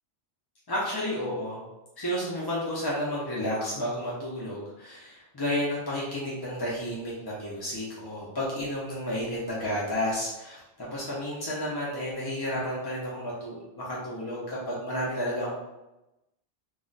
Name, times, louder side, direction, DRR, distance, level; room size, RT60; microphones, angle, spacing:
voice 1, 0.7-1.6 2.0-15.5, equal, 35° left, -6 dB, 0.3 m, -31 dB
2.3 x 2.1 x 3.8 m, 0.96 s
omnidirectional pair, 1.2 m